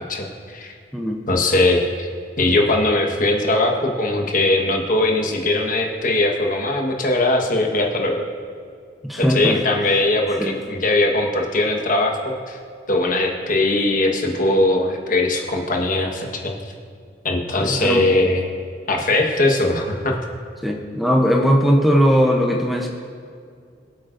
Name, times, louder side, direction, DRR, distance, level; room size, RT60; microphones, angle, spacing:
voice 1, 0.1-0.7 1.3-2.1 2.4-8.2 9.2-12.6 12.9-16.5 17.2-18.5 18.9-20.2, left 2 dB, 50° left, 2 dB, 1.3 m, -20 dB
voice 2, 9.0-9.6 10.4-10.5 17.6-18.0 20.6-22.9, equal, ahead, 1 dB, 0.7 m, -18 dB
23.0 x 8.4 x 2.6 m, 2.2 s
head